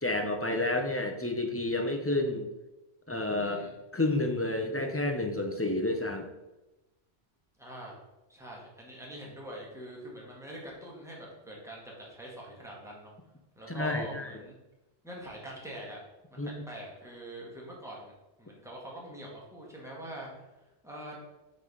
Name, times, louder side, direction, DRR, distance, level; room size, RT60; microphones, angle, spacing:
voice 1, 0.0-2.5 3.1-3.6 3.9-6.3 13.7-14.4 16.4-16.6, left 2 dB, 15° left, 4 dB, 0.5 m, -30 dB
voice 2, 3.4-3.7 7.6-8.0 8.3-13.1 13.6-14.6 15.0-16.0 16.3-18.1 18.4-20.3 20.8-21.2, right 1 dB, 5° right, -4 dB, 1.8 m, -44 dB
6.1 x 4.1 x 5.4 m, 1.0 s
omnidirectional pair, 1.1 m